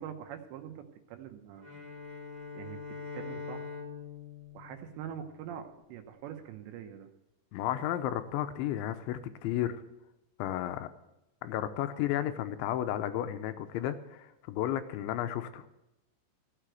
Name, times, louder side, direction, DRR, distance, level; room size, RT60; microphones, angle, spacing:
voice 1, 0.0-1.7 2.5-2.8 3.1-3.7 4.5-7.1, right 9 dB, 80° right, 6 dB, 3.0 m, -44 dB
Bowed string instrument, 1.6-5.8, left 5 dB, 10° right, 3.0 m, -44 dB
voice 2, 7.5-9.8 10.4-10.9 11.4-15.6, left 12 dB, 90° left, 10 dB, 3.2 m, -33 dB
15.0 x 6.7 x 9.0 m, 0.92 s
omnidirectional pair, 5.2 m